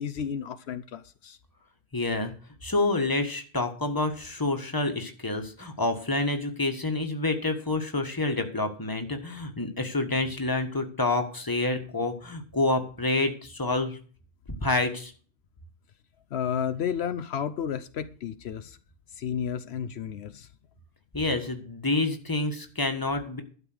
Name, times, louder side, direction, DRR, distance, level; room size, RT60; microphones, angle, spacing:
voice 1, 0.0-1.4 16.3-18.8 19.1-20.5, left 8 dB, 75° left, 0.9 m, -32 dB
voice 2, 1.9-2.3 2.6-14.0 14.6-15.1 21.1-23.4, left 2 dB, 20° left, 1.6 m, -28 dB
12.0 x 5.4 x 7.9 m
omnidirectional pair, 1.1 m